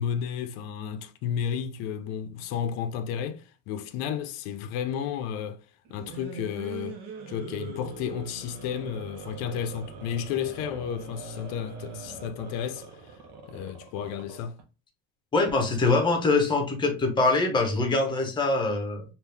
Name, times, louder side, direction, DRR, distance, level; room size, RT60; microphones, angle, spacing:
voice 1, 0.0-5.6 5.9-7.0 7.3-13.2 13.5-14.6, left 8 dB, 60° left, 0.6 m, -32 dB
sound 1, 5.9-14.6, right 4 dB, 70° right, 1.0 m, -42 dB
voice 2, 15.3-19.0, left 3 dB, 15° left, 0.7 m, -24 dB
3.6 x 2.5 x 3.2 m
cardioid pair, 165°, 31 cm